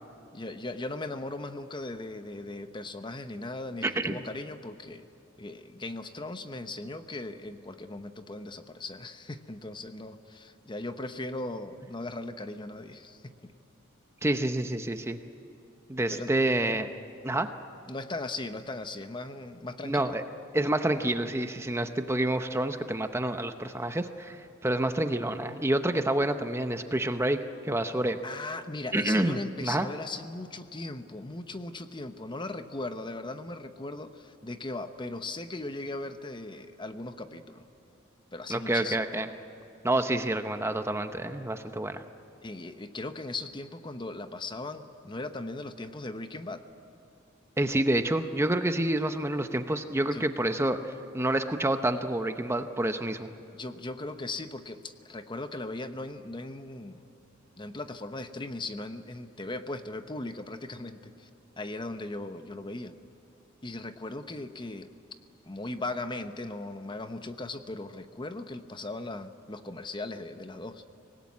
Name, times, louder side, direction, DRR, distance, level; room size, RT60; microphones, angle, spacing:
voice 1, 0.3-5.1 5.4-13.5 16.1-16.3 17.9-20.1 28.2-37.6 38.3-39.0 42.4-46.6 50.0-50.2 53.5-57.0 57.6-61.3 61.6-62.9 63.6-64.9 65.4-70.8, left 2 dB, 25° left, 9 dB, 0.9 m, -38 dB
voice 2, 3.8-4.3 14.2-15.2 15.9-16.9 17.2-17.5 19.8-20.2 20.5-28.2 28.9-29.9 38.5-39.3 39.8-42.0 47.6-53.3, right 1 dB, 15° right, 8 dB, 0.8 m, -28 dB
25.0 x 19.5 x 9.6 m, 2.8 s
head